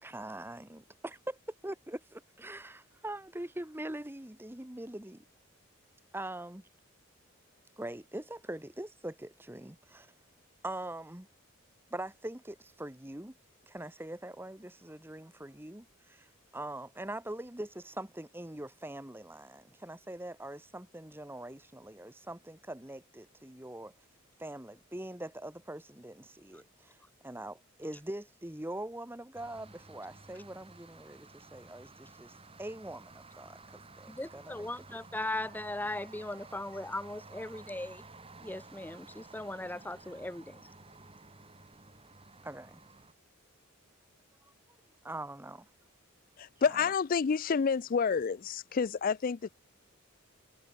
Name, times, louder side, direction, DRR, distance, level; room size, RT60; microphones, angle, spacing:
voice 1, 0.0-1.4 1.6-5.2 6.1-6.7 7.8-10.1 10.6-11.3 11.9-13.3 13.7-23.9 24.4-27.0 27.2-32.3 32.6-35.0 42.4-42.8 45.0-45.7, right 1 dB, 10° right, 1.1 m, -43 dB
sound 1, 29.3-43.1, right 3 dB, 25° right, 2.5 m, -53 dB
voice 2, 34.1-38.0 38.4-40.6, left 1 dB, 10° left, 0.7 m, -38 dB
voice 3, 46.4-49.5, left 6 dB, 40° left, 0.4 m, -29 dB
head